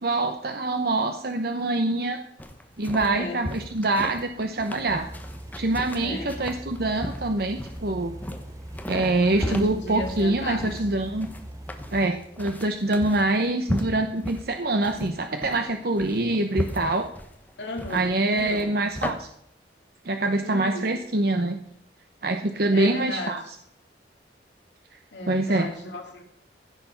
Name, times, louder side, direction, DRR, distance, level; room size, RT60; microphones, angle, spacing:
voice 1, 0.0-2.2 2.8-5.1 5.6-8.1 8.9-11.3 11.9-17.1 17.9-19.3 20.0-21.6 22.2-23.4 25.3-25.7, right 2 dB, 55° right, 6 dB, 0.8 m, -25 dB
sound 1, 2.4-19.1, equal, 10° left, 1.1 m, -36 dB
voice 2, 3.0-3.5 6.0-6.4 9.3-10.7 17.6-18.7 20.4-20.9 22.7-23.3 25.1-26.2, left 1 dB, 75° left, 2 dB, 2.4 m, -35 dB
sound 2, 4.9-12.0, right 1 dB, 20° right, 0.7 m, -41 dB
15.5 x 6.8 x 5.8 m, 0.74 s
head